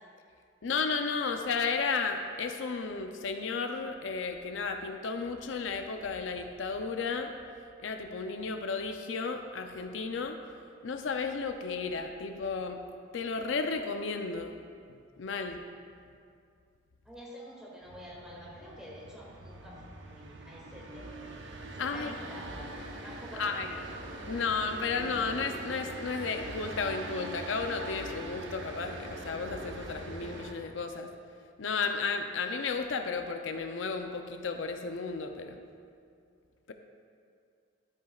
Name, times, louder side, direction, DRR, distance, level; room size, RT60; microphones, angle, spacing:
voice 1, 0.6-7.3 7.8-10.4 10.8-12.8 13.1-14.6 15.2-15.6 21.8-22.1 23.3-23.7 24.2-31.1 31.6-35.6 36.7-36.8, left 4 dB, 80° left, 5 dB, 0.5 m, -33 dB
voice 2, 17.0-19.8 20.1-24.1, equal, 5° right, -6 dB, 2.2 m, -48 dB
sound 1, 17.8-30.5, right 1 dB, 80° right, 0.9 m, -43 dB
12.5 x 9.1 x 2.4 m, 2.4 s
head